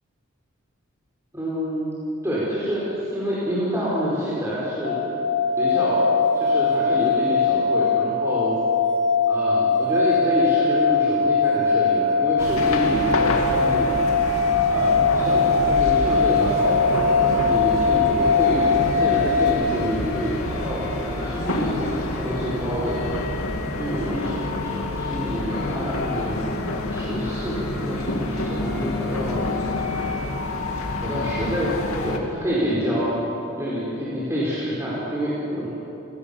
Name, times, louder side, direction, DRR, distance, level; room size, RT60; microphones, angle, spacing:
voice 1, 1.3-1.9 2.2-5.0 5.6-6.1 6.3-8.6 9.3-14.1 14.7-21.9 22.2-23.1 23.8-26.6 26.9-29.6 31.0-31.7 32.0-33.1 33.6-35.7, equal, 15° right, -8 dB, 4.7 m, -27 dB
sound 1, 4.8-19.5, left 4 dB, 60° left, 5.7 m, -21 dB
sound 2, 12.4-32.2, left 2 dB, 85° left, 2.4 m, -28 dB
29.0 x 17.5 x 7.1 m, 2.9 s
head